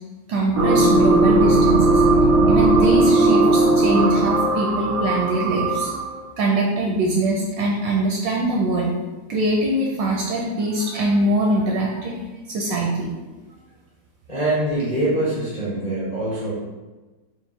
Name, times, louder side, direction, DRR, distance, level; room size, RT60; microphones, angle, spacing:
voice 1, 0.3-2.0 2.5-5.9 6.4-8.9 9.3-12.1 12.5-13.1, right 1 dB, 75° right, -2 dB, 1.1 m, -22 dB
sound 1, 0.5-6.2, right 2 dB, 30° right, 0.6 m, -17 dB
voice 2, 14.3-16.5, right 1 dB, 25° left, -9 dB, 0.8 m, -24 dB
4.3 x 2.0 x 4.2 m, 1.2 s
omnidirectional pair, 2.4 m